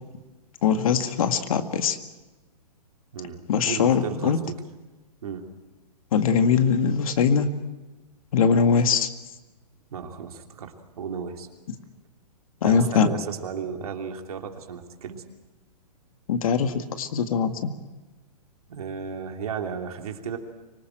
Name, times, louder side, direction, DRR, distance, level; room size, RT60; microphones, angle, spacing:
voice 1, 0.6-2.0 3.5-4.4 6.1-7.5 8.3-9.1 12.6-13.1 16.3-17.7, left 6 dB, 60° left, 8 dB, 1.9 m, -21 dB
voice 2, 3.1-4.6 5.2-5.4 9.9-11.5 12.6-15.2 18.7-20.4, right 6 dB, 65° right, 3 dB, 3.0 m, -34 dB
25.0 x 19.5 x 7.8 m, 1.2 s
hypercardioid pair, 130°, 20 cm